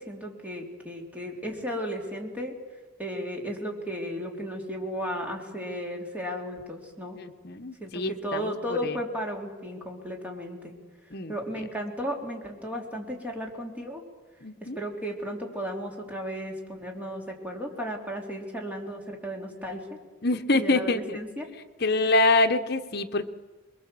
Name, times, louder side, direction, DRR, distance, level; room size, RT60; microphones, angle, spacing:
voice 1, 0.0-2.5 3.0-7.2 7.8-10.7 11.3-14.0 14.6-19.9 20.5-21.5, equal, 5° right, 0 dB, 3.5 m, -34 dB
voice 2, 7.2-9.0 11.1-11.3 14.4-14.8 20.2-21.2 21.8-23.3, left 2 dB, 50° left, 8 dB, 1.2 m, -25 dB
27.5 x 22.0 x 7.8 m, 1.3 s
head